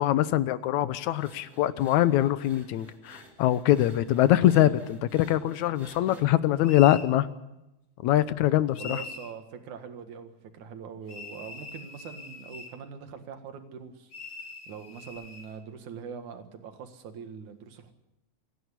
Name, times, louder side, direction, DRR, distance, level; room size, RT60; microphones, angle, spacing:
voice 1, 0.0-7.3 8.0-9.0, left 13 dB, 80° left, 14 dB, 2.2 m, -23 dB
sound 1, 1.1-6.2, right 2 dB, 30° right, 3.5 m, -52 dB
sound 2, 6.6-7.1 8.7-9.3 11.1-12.8 14.1-15.5, left 4 dB, 40° left, 2.5 m, -42 dB
voice 2, 8.8-14.1 14.7-17.9, right 6 dB, 85° right, 7 dB, 3.2 m, -42 dB
27.5 x 11.0 x 9.8 m, 0.93 s
omnidirectional pair, 3.3 m